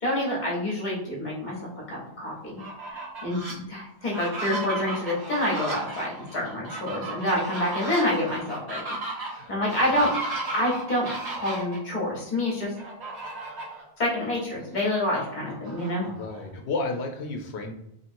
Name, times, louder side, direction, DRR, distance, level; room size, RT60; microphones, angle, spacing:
voice 1, 0.0-8.8 9.5-10.1 10.5-12.7 14.0-16.0, left 1 dB, 45° left, -4 dB, 1.0 m, -27 dB
Fowl, 2.4-3.5 4.0-11.8 12.8-13.8 14.3-14.4 14.7-16.5, right 2 dB, 45° right, 0.8 m, -35 dB
voice 2, 16.0-17.7, left 3 dB, 85° left, 4 dB, 0.9 m, -32 dB
2.9 x 2.7 x 2.5 m, 0.79 s
omnidirectional pair, 1.1 m